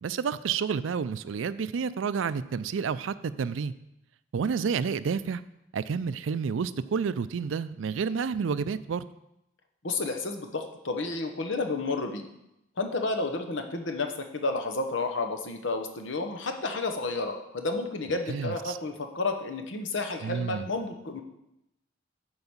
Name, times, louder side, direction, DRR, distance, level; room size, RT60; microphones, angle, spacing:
voice 1, 0.0-3.7 4.3-5.4 5.7-9.1 18.3-18.8 20.2-20.7, right 6 dB, 85° right, 15 dB, 0.4 m, -30 dB
voice 2, 9.8-12.3 12.8-21.2, left 3 dB, 75° left, 5 dB, 1.0 m, -31 dB
7.9 x 4.8 x 7.2 m, 0.86 s
head